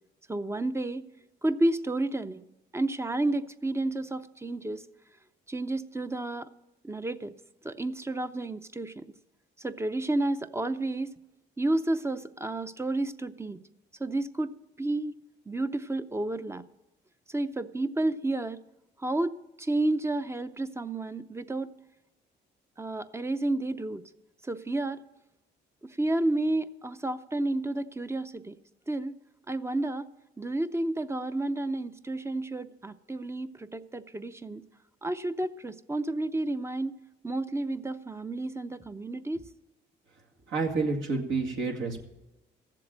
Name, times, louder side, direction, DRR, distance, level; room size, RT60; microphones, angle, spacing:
voice 1, 0.3-1.1 1.4-2.4 2.7-4.8 5.5-6.5 6.8-7.3 7.6-9.1 9.6-11.1 11.6-13.6 14.0-15.1 15.5-16.6 17.3-18.6 19.0-21.7 22.8-24.0 24.4-25.0 25.8-28.5 28.9-29.1 29.5-30.1 30.4-34.6 35.0-37.0 37.2-39.4, right 2 dB, 15° right, 11 dB, 0.6 m, -31 dB
voice 2, 40.5-42.0, right 4 dB, 75° right, 0 dB, 2.1 m, -29 dB
14.5 x 7.6 x 7.5 m, 0.97 s
cardioid pair, 90°, 20 cm